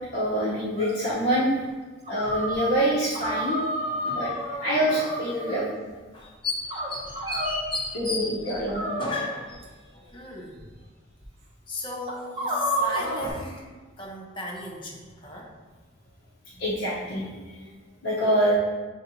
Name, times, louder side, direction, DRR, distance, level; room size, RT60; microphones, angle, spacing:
voice 1, 0.1-1.5 2.1-4.3 4.6-5.7 7.9-8.8 16.6-17.7 18.0-18.6, equal, 70° left, -10 dB, 0.9 m, -26 dB
sound 1, 0.8-1.0 2.1-2.8 3.1-5.7 6.7-7.6 8.7-9.6 10.6-10.7 11.2-11.3 12.1-13.3, equal, 35° right, 0.7 m, -30 dB
voice 2, 3.9-4.4 5.5-5.6 6.1-10.8 11.7-15.6 16.5-16.6, left 2 dB, 25° left, -2 dB, 0.7 m, -35 dB
7.1 x 2.8 x 2.7 m, 1.3 s
head